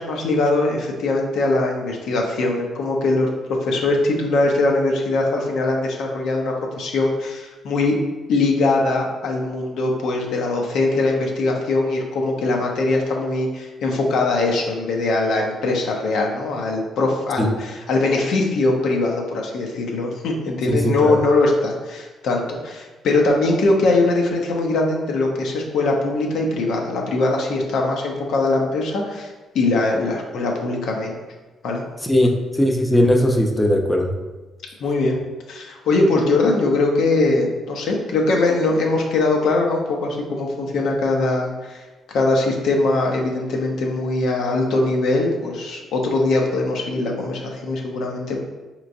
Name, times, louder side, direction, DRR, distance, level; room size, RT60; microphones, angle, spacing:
voice 1, 0.0-3.3 3.6-8.0 8.3-29.3 29.5-31.2 31.6-31.8 32.2-32.3 34.8-35.2 35.5-48.4, left 2 dB, 80° left, 0 dB, 0.6 m, -21 dB
voice 2, 20.7-21.2 32.0-34.1, left 1 dB, 10° left, 2 dB, 0.5 m, -18 dB
4.4 x 3.0 x 2.5 m, 1.2 s
cardioid pair, 90°, 0 cm